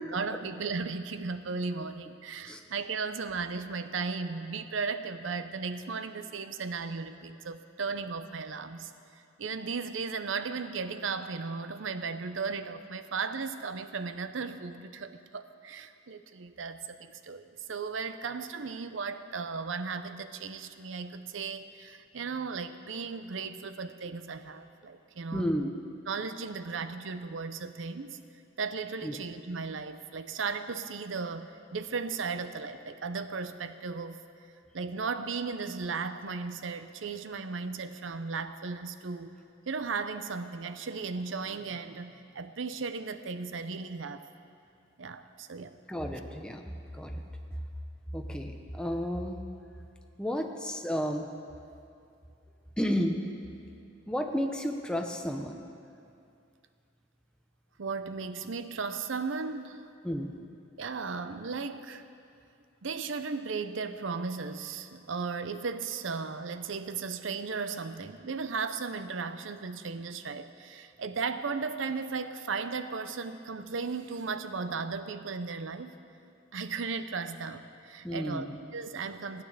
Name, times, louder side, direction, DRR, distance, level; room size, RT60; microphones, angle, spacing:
voice 1, 0.1-8.9 9.4-25.5 26.1-28.2 28.6-34.2 34.7-39.3 39.7-44.3 45.0-45.7 57.8-59.9 60.8-62.0 62.8-76.0 76.5-79.4, right 4 dB, 70° right, 10 dB, 0.6 m, -36 dB
voice 2, 25.3-25.7 29.0-29.2 45.9-46.7 46.9-47.2 48.1-49.4 50.2-51.3 52.8-53.3 54.1-55.6 60.0-60.3 78.0-78.6, equal, 5° left, 3 dB, 0.8 m, -32 dB
15.5 x 9.1 x 6.6 m, 2.5 s
head